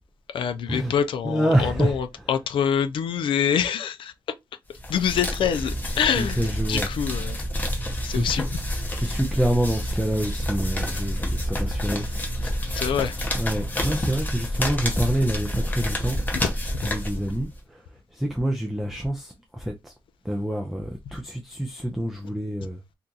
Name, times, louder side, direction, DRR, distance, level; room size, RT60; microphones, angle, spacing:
voice 1, 0.3-4.1 4.9-7.4 8.0-8.5 12.4-13.3 16.4-16.5, left 8 dB, 85° left, 0.4 m, -26 dB
voice 2, 1.2-2.0 6.2-6.9 8.1-8.5 8.9-12.1 12.4-12.5 13.3-16.2 16.8-19.9 20.2-22.8, right 1 dB, ahead, 0.4 m, -27 dB
sound 1, 4.7-17.6, equal, 20° left, 0.8 m, -28 dB
2.8 x 2.4 x 3.7 m
wide cardioid pair, 165°, 9 cm